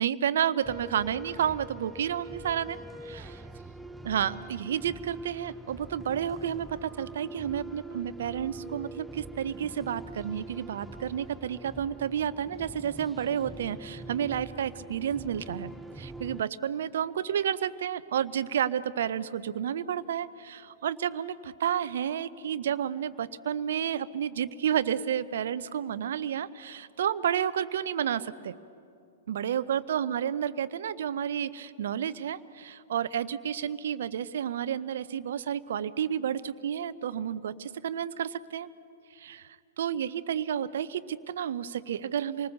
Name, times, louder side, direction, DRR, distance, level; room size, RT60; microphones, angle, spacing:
voice 1, 0.0-2.8 3.0-3.2 4.0-15.7 16.0-28.6 29.3-38.7 39.2-39.5 39.8-42.5, right 9 dB, 60° right, 15 dB, 0.6 m, -31 dB
sound 1, 0.6-16.4, right 2 dB, 5° right, 0.5 m, -44 dB
27.0 x 19.5 x 6.8 m, 2.5 s
figure-of-eight pair, 105°, 0 cm